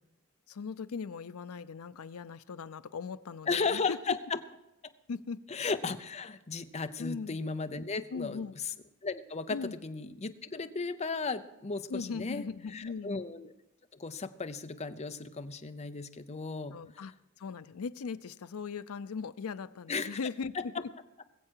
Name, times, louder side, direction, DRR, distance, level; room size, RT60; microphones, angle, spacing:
voice 1, 0.5-4.2 5.1-5.4 7.0-7.4 8.1-8.6 9.5-9.8 11.9-13.1 16.7-17.1 17.4-20.9, left 5 dB, 85° left, 14 dB, 0.5 m, -39 dB
voice 2, 3.5-4.4 5.5-8.7 9.0-12.5 12.7-13.5 13.9-17.0 19.9-20.2 20.5-20.8, left 4 dB, 30° left, 9 dB, 0.6 m, -35 dB
21.0 x 7.5 x 4.6 m, 0.90 s
head